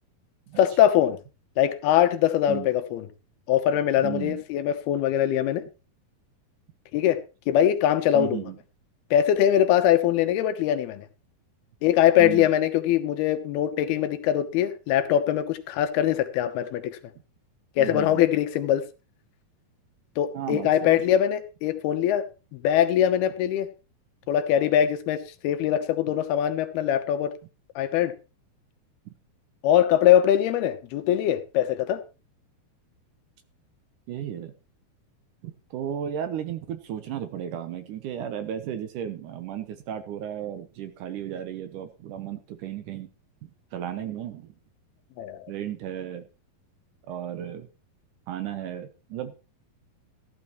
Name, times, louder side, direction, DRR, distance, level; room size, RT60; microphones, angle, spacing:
voice 1, 0.6-1.2 1.6-3.1 3.5-5.6 6.9-7.2 7.5-8.4 9.1-11.1 11.8-17.0 17.8-18.9 20.2-22.3 22.5-23.7 24.3-27.3 27.8-28.1 29.6-32.0 45.2-45.5, left 11 dB, 85° left, 2.9 m, -22 dB
voice 2, 4.0-4.4 8.1-8.6 12.2-12.5 17.8-18.3 20.3-21.0 29.1-29.2 34.1-34.5 35.4-43.1 43.7-44.5 45.5-46.3 47.1-47.7 48.3-49.3, right 10 dB, 70° right, 2.2 m, -34 dB
14.5 x 12.0 x 3.1 m
omnidirectional pair, 4.4 m